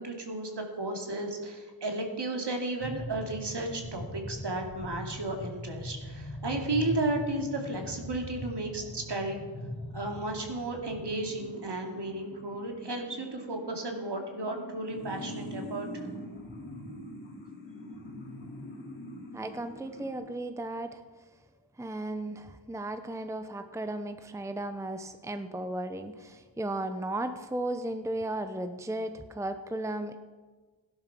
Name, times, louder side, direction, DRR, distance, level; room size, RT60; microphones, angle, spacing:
voice 1, 0.0-9.4 9.9-16.0, right 2 dB, 60° right, 2 dB, 2.7 m, -34 dB
sound 1, 2.8-20.1, left 1 dB, 80° left, 4.0 m, -42 dB
voice 2, 19.3-21.0 21.8-30.2, right 1 dB, 5° right, 9 dB, 0.8 m, -35 dB
17.0 x 11.0 x 6.0 m, 1.4 s
wide cardioid pair, 90°, 45 cm